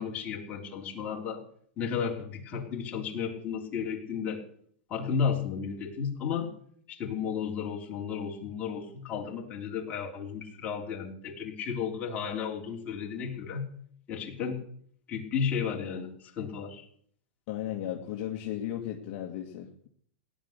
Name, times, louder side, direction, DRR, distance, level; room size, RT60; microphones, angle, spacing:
voice 1, 0.0-1.4 1.8-4.4 4.9-6.5 6.9-13.7 14.1-14.6 15.1-16.8, left 6 dB, 25° left, -1 dB, 3.3 m, -33 dB
voice 2, 17.5-19.9, left 11 dB, 40° left, 0 dB, 1.9 m, -35 dB
17.5 x 10.5 x 6.6 m, 0.63 s
supercardioid pair, 155°, 7 cm